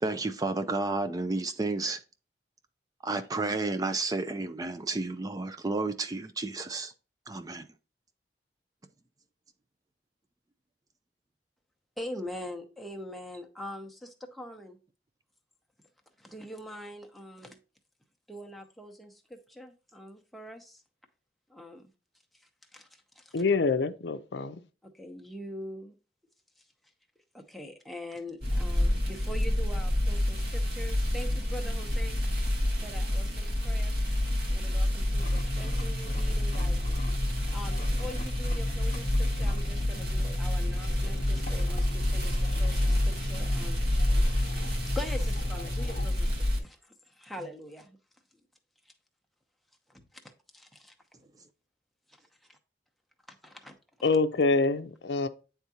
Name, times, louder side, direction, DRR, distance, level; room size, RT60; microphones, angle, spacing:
voice 1, 0.0-2.0 3.0-6.9 7.3-7.7, right 3 dB, 20° right, 0.4 m, -31 dB
voice 2, 12.0-14.8 16.2-17.6 18.3-20.8 21.5-21.8 22.7-23.3 24.8-25.9 27.3-32.3 32.8-34.0 34.5-37.0 37.5-43.8 44.9-48.0 49.9-50.9 53.4-53.7, left 1 dB, ahead, 0.8 m, -43 dB
voice 3, 23.3-24.6 54.0-55.3, left 3 dB, 70° left, 0.5 m, -26 dB
sound 1, 28.4-46.6, left 1 dB, 60° right, 1.6 m, -28 dB
sound 2, 35.1-46.1, left 1 dB, 45° left, 0.8 m, -39 dB
9.4 x 3.6 x 2.8 m
head